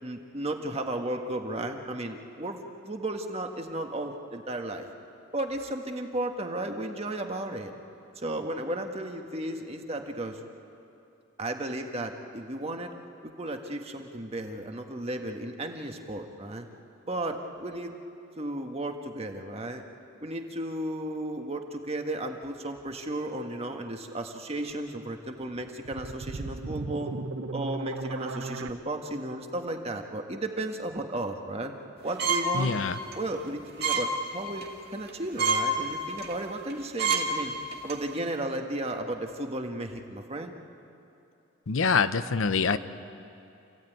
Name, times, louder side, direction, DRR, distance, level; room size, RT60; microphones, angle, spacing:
voice 1, 0.0-4.9 5.3-7.7 8.2-10.4 11.4-12.9 13.2-16.7 17.0-18.0 18.4-19.8 20.2-27.1 27.5-31.7 32.0-32.8 33.1-34.6 34.9-37.5 37.8-40.5, right 1 dB, 30° right, 4 dB, 1.5 m, -34 dB
sound 1, 25.5-28.7, right 3 dB, 80° right, 0.8 m, -36 dB
sound 2, 32.2-32.6 33.0-33.1 33.8-34.1 34.5-34.7 35.1-35.2 35.4-35.6 36.2-36.3 36.7-36.8 37.0-37.3 37.7-37.9, right 5 dB, 50° right, 2.0 m, -26 dB
voice 2, 32.5-32.9 41.7-42.8, left 5 dB, 75° left, 12 dB, 0.8 m, -25 dB
28.0 x 16.0 x 9.3 m, 2.8 s
head